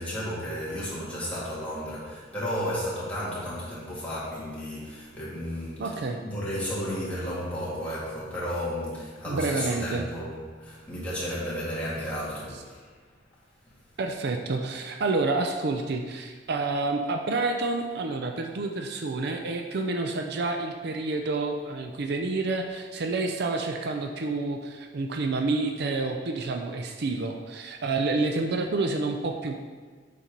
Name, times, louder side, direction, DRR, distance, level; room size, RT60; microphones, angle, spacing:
voice 1, 0.0-12.9, equal, 5° left, -9 dB, 2.3 m, -33 dB
voice 2, 5.8-6.2 9.3-10.1 14.0-29.6, right 3 dB, 60° right, 4 dB, 0.5 m, -29 dB
7.2 x 4.3 x 5.2 m, 1.5 s
head